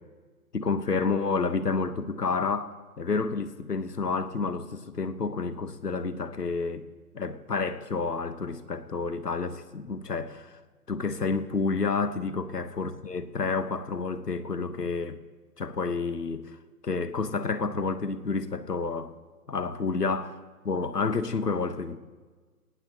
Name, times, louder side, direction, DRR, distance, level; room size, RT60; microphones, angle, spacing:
voice 1, 0.5-6.9 7.1-10.6 10.9-15.2 15.6-16.6 16.8-19.1 19.5-20.3 20.6-22.0, left 4 dB, 75° left, 1.3 m, -29 dB
19.5 x 18.0 x 3.0 m
figure-of-eight pair, 135°, 48 cm